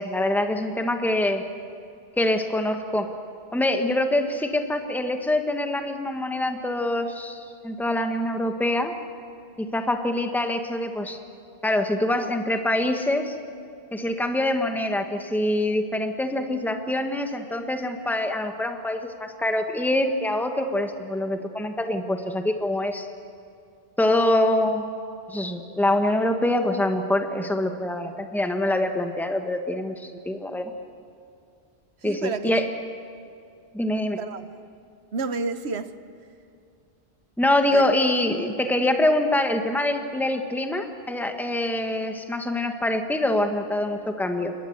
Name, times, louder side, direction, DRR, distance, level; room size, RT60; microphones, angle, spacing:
voice 1, 0.0-1.4 2.2-3.1 3.5-8.9 9.6-11.2 11.6-13.3 13.9-23.1 24.0-24.8 25.3-29.9 30.2-30.7 32.0-32.7 33.7-34.2 37.4-44.5, left 1 dB, ahead, 1.4 m, -25 dB
voice 2, 32.0-32.6 34.2-34.6 35.1-36.0 37.7-37.9, right 4 dB, 90° right, 1.3 m, -30 dB
28.5 x 21.5 x 8.1 m
omnidirectional pair, 1.1 m